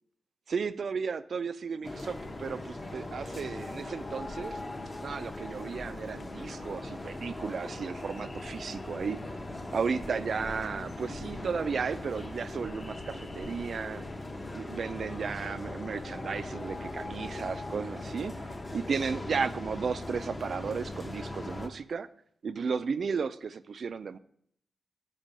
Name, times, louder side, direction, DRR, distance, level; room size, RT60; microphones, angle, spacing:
voice 1, 0.5-4.6 5.0-9.2 9.7-14.0 14.5-22.1 22.4-24.2, right 5 dB, 55° right, 14 dB, 0.3 m, -34 dB
sound 1, 1.8-21.7, left 2 dB, 20° left, 0.7 m, -40 dB
7.4 x 5.4 x 5.2 m, 0.68 s
wide cardioid pair, 160°, 0 cm